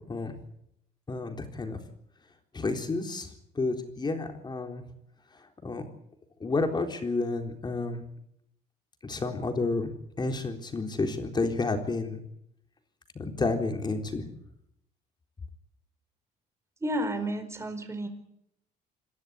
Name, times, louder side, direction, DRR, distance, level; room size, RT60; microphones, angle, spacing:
voice 1, 1.1-1.8 2.5-3.3 3.6-4.8 5.6-5.9 6.4-8.0 9.0-9.9 10.2-12.2 13.2-14.3, left 3 dB, 25° left, 5 dB, 3.9 m, -30 dB
voice 2, 16.8-18.1, right 1 dB, 15° right, 8 dB, 4.7 m, -31 dB
27.5 x 12.5 x 9.8 m, 0.78 s
cardioid pair, 110°, 17 cm